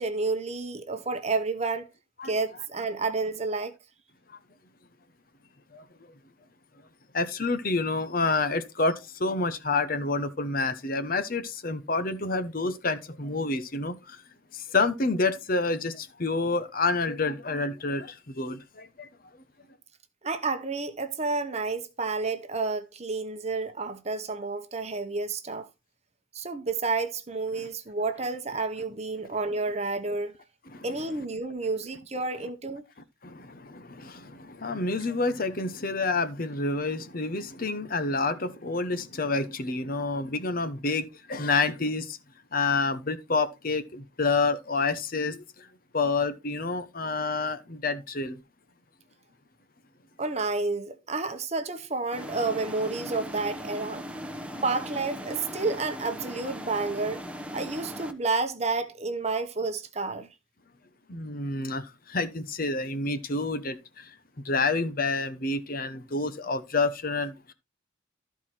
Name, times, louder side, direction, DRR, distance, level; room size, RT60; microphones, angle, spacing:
voice 1, 0.0-1.9 2.2-3.8 20.2-25.7 26.3-30.3 30.8-32.8 50.2-54.0 54.6-57.2 57.5-60.3, right 3 dB, 30° right, 1.0 m, -30 dB
voice 2, 7.1-14.2 14.5-19.1 27.5-27.7 30.7-30.9 33.2-42.2 42.5-45.7 45.9-48.4 61.1-64.1 64.4-67.5, left 3 dB, 45° left, 0.9 m, -28 dB
sound 1, 52.1-58.1, equal, 5° right, 1.0 m, -39 dB
13.5 x 4.7 x 4.2 m
head